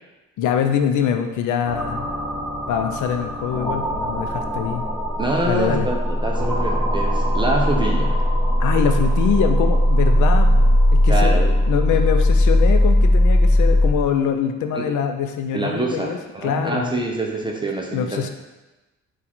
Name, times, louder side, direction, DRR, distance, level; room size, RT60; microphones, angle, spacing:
voice 1, 0.4-2.1 2.7-4.9 5.4-5.9 8.6-11.3 11.7-16.9 17.9-18.3, left 8 dB, 75° left, 7 dB, 0.5 m, -24 dB
sound 1, 1.6-13.9, left 1 dB, 5° left, 1.2 m, -19 dB
voice 2, 5.2-8.2 11.1-11.6 14.7-14.8 15.5-18.2, right 2 dB, 15° right, -1 dB, 0.5 m, -25 dB
4.0 x 2.4 x 4.3 m, 1.1 s
cardioid pair, 90°, 30 cm